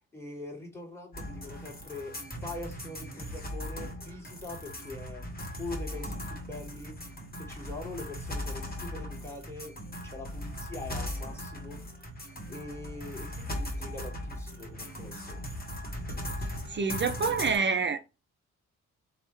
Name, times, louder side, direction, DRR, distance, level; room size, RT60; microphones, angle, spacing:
voice 1, 0.1-5.2 5.6-7.0 7.3-9.8 10.0-11.8 12.5-15.4, left 2 dB, 5° left, 1.8 m, -43 dB
sound 1, 1.1-17.6, left 1 dB, 20° left, 1.4 m, -38 dB
voice 2, 16.7-18.1, right 5 dB, 30° right, 0.5 m, -27 dB
3.1 x 2.1 x 3.1 m
hypercardioid pair, 40°, 40 cm